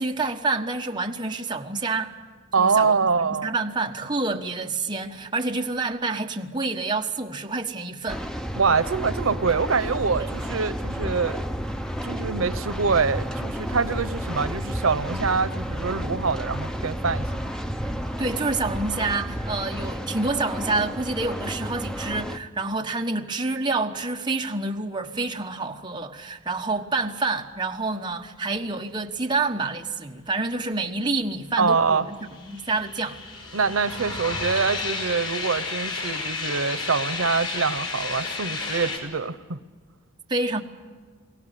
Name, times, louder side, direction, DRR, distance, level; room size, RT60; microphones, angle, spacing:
voice 1, 0.0-2.1 2.6-8.2 10.2-10.3 18.2-33.2 40.3-40.6, right 3 dB, 20° right, 1.2 m, -28 dB
voice 2, 2.5-3.5 4.3-4.4 8.5-11.4 12.0-17.2 31.6-32.0 33.5-39.6, right 5 dB, 90° right, 0.8 m, -24 dB
sound 1, 8.1-22.4, equal, 5° left, 0.7 m, -31 dB
sound 2, 31.8-39.0, left 4 dB, 75° left, 5.2 m, -32 dB
22.5 x 17.5 x 10.0 m
head